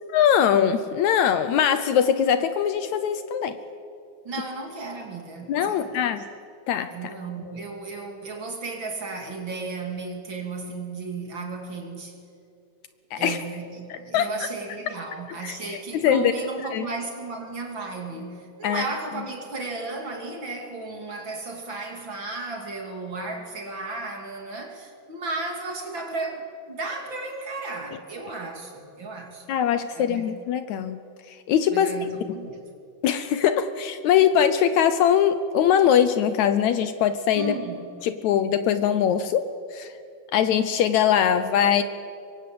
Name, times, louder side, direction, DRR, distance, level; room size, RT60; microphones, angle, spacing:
voice 1, 0.1-3.6 5.5-6.2 6.7-6.9 13.1-13.4 13.9-14.3 15.4-16.3 16.7-16.9 18.6-18.8 29.5-31.0 31.3-31.9 33.0-37.5 38.0-39.4 39.7-39.9 40.3-41.8, left 9 dB, 70° left, 2.0 m, -22 dB
voice 2, 4.2-6.1 6.9-12.2 13.2-29.5 29.9-30.3 31.7-32.6 37.3-37.9, right 3 dB, 40° right, 3.2 m, -34 dB
25.5 x 23.5 x 7.8 m
omnidirectional pair, 3.6 m